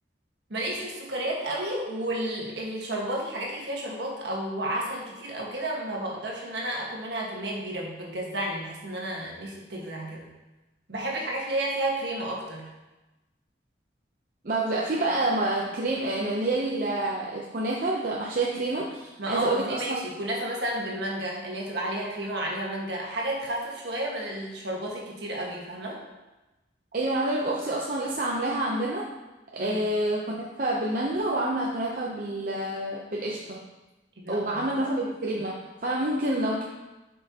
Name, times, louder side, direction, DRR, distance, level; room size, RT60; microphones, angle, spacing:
voice 1, 0.5-10.3 10.9-12.7 19.2-26.0 29.6-29.8 34.2-34.9, right 1 dB, 70° right, -2 dB, 1.5 m, -32 dB
voice 2, 14.4-20.0 26.9-29.1 29.5-33.6 34.3-35.5 35.8-36.6, right 1 dB, 50° right, -4 dB, 0.6 m, -28 dB
7.5 x 5.5 x 2.8 m, 1.1 s
head